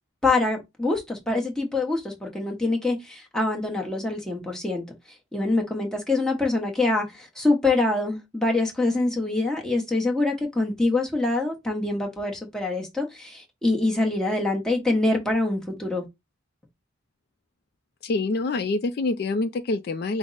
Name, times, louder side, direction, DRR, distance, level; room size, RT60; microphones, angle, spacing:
voice 1, 0.2-4.8 5.3-16.1, left 2 dB, 5° left, 0.8 m, -25 dB
voice 2, 18.0-20.2, left 3 dB, 50° left, 0.3 m, -26 dB
5.0 x 2.0 x 3.9 m
head